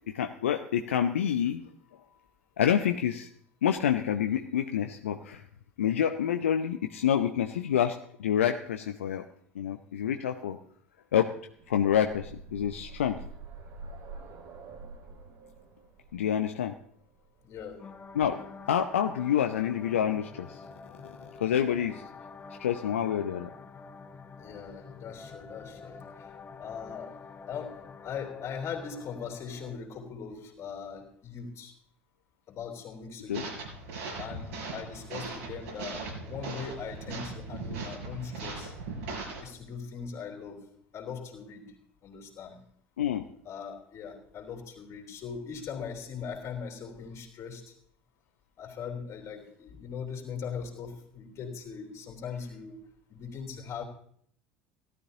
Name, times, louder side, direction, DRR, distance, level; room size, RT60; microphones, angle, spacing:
voice 1, 0.1-1.6 2.6-3.3 3.6-5.4 5.8-9.2 9.5-10.6 11.1-11.3 11.7-13.2 16.1-16.7 18.1-18.4 18.7-20.7 21.4-22.0 22.6-23.5 33.3-33.4 43.0-43.2, left 9 dB, 75° left, 0.7 m, -27 dB
sound 1, 11.4-19.2 20.3-20.4 20.8-20.9, right 3 dB, 50° right, 2.0 m, -47 dB
voice 2, 17.4-18.0 24.4-26.3 26.6-31.7 32.5-33.6 34.2-38.7 39.4-42.6 43.5-47.8 48.6-53.8, left 6 dB, 45° left, 3.5 m, -40 dB
sound 2, 17.8-29.8, left 5 dB, 25° left, 1.0 m, -47 dB
sound 3, 33.3-39.4, right 3 dB, 70° right, 4.9 m, -39 dB
17.5 x 12.5 x 2.9 m
figure-of-eight pair, 70°, 7 cm